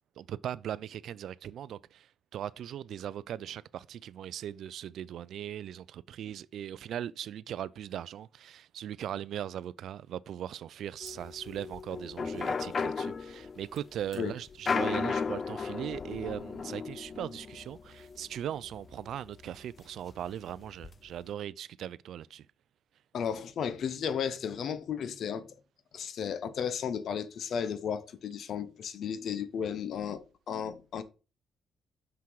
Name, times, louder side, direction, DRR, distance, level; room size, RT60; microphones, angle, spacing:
voice 1, 0.2-22.5, right 10 dB, 70° right, 0.3 m, -39 dB
sound 1, 11.0-19.6 20.0-20.1 20.3-20.9, left 5 dB, 40° left, 0.3 m, -35 dB
voice 2, 23.1-25.5 25.9-31.0, left 7 dB, 65° left, 0.9 m, -34 dB
5.9 x 5.9 x 4.7 m
cardioid pair, 90°, 0 cm